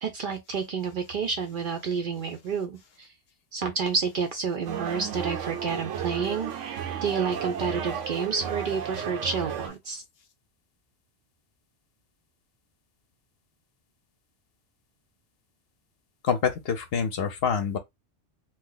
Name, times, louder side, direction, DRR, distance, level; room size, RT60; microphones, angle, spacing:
voice 1, 0.0-3.1 3.5-6.5 7.0-10.0, right 5 dB, 55° right, 0.6 m, -29 dB
sound 1, 4.7-9.7, right 8 dB, 85° right, 1.0 m, -33 dB
voice 2, 16.2-17.8, left 6 dB, 60° left, 0.8 m, -26 dB
2.8 x 2.1 x 3.7 m
omnidirectional pair, 1.2 m